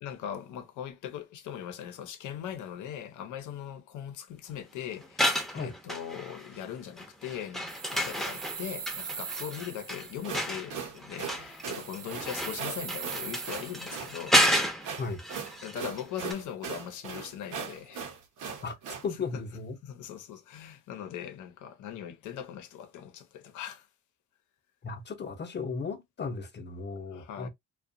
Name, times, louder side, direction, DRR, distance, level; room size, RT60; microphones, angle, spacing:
voice 1, 0.0-14.4 15.6-18.1 19.8-23.9 27.1-27.5, left 9 dB, 80° left, 0.7 m, -40 dB
sound 1, 5.0-6.6 7.0-16.0 16.3-16.4, equal, ahead, 0.6 m, -31 dB
sound 2, 7.7-10.5 11.5-14.2, right 6 dB, 30° right, 0.4 m, -41 dB
sound 3, 10.1-19.1, right 6 dB, 85° right, 0.8 m, -39 dB
voice 2, 19.0-19.8 24.8-27.5, left 4 dB, 35° left, 0.7 m, -35 dB
2.5 x 2.3 x 2.6 m
cardioid pair, 90°, 30 cm